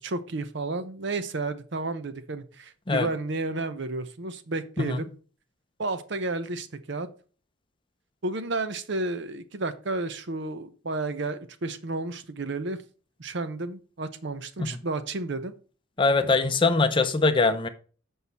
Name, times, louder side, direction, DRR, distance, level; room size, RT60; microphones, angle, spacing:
voice 1, 0.0-5.1 5.8-7.1 8.2-12.8 13.2-15.5, right 2 dB, 55° right, 0.7 m, -32 dB
voice 2, 16.0-17.7, left 3 dB, 25° left, 0.6 m, -22 dB
7.9 x 5.5 x 4.1 m
head